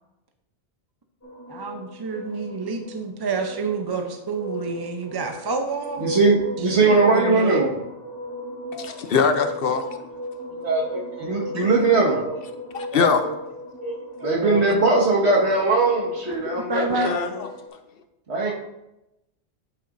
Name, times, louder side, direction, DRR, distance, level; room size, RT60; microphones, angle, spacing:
sound 1, 1.2-17.7, equal, 15° left, 1.4 m, -36 dB
voice 1, 1.5-6.2 6.6-7.7 16.7-17.1, right 4 dB, 25° right, 0.6 m, -28 dB
voice 2, 6.0-7.7 11.2-12.2 14.2-17.2 18.3-18.5, right 3 dB, 75° right, 1.8 m, -20 dB
voice 3, 8.7-10.0 12.7-13.2 17.0-17.3, left 5 dB, 60° left, 0.8 m, -22 dB
voice 4, 10.5-11.7 12.0-12.4 12.9-13.3 13.8-14.8, right 2 dB, 45° right, 1.6 m, -30 dB
8.5 x 8.1 x 2.6 m
omnidirectional pair, 1.1 m